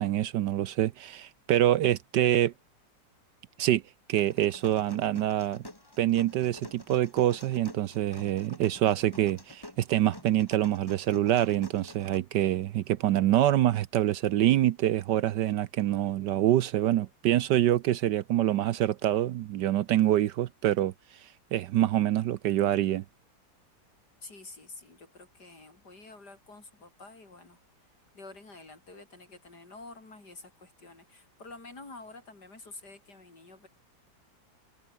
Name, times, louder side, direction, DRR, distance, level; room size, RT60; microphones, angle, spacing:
voice 1, 0.0-2.5 3.6-3.8 4.1-5.6 6.0-20.9 21.2-23.0, right 13 dB, 70° right, 1.2 m, -26 dB
sound 1, 4.2-12.2, left 1 dB, 10° left, 2.5 m, -48 dB
voice 2, 24.2-27.6 28.1-33.7, left 3 dB, 55° left, 5.7 m, -49 dB
omnidirectional pair, 2.1 m